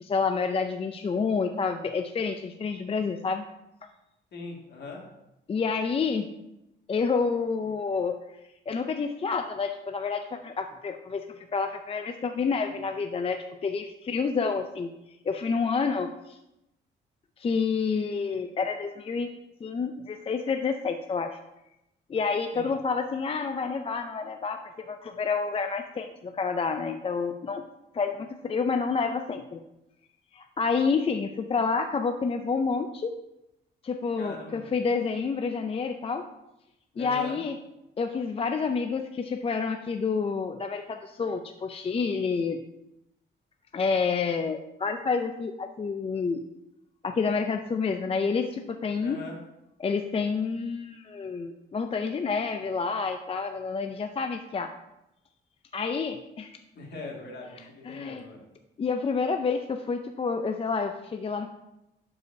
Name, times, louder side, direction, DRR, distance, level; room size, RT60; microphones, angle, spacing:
voice 1, 0.0-3.5 5.5-6.3 6.9-8.2 8.7-14.9 15.2-16.4 17.4-19.3 19.6-21.4 22.1-27.6 27.9-29.6 30.3-33.1 33.8-36.2 37.0-37.6 38.0-42.6 43.7-46.4 47.0-49.2 49.8-54.7 55.7-56.6 57.4-58.2 58.8-61.5, left 5 dB, 30° left, 6 dB, 0.4 m, -29 dB
voice 2, 4.3-5.0 22.5-22.7 34.2-34.6 36.9-37.4 49.0-49.4 56.7-58.4, left 3 dB, 55° left, -1 dB, 2.0 m, -41 dB
11.5 x 4.8 x 2.7 m, 0.90 s
cardioid pair, 90°, 20 cm